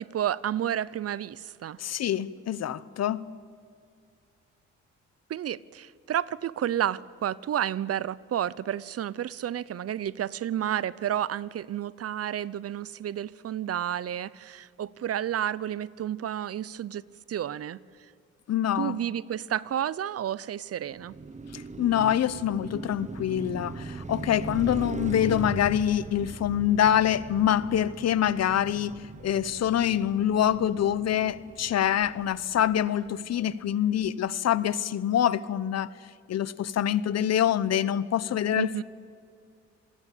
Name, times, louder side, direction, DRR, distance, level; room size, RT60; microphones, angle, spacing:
voice 1, 0.0-1.8 5.3-17.0 17.3-17.8 18.8-21.2 38.5-38.8, right 10 dB, 50° right, 0.7 m, -31 dB
voice 2, 1.8-3.2 18.5-19.0 21.5-35.9 36.3-38.8, left 10 dB, 60° left, 0.9 m, -25 dB
Car passing by, 20.9-33.1, right 4 dB, 25° right, 1.2 m, -40 dB
27.5 x 19.5 x 8.5 m
cardioid pair, 90°, 30 cm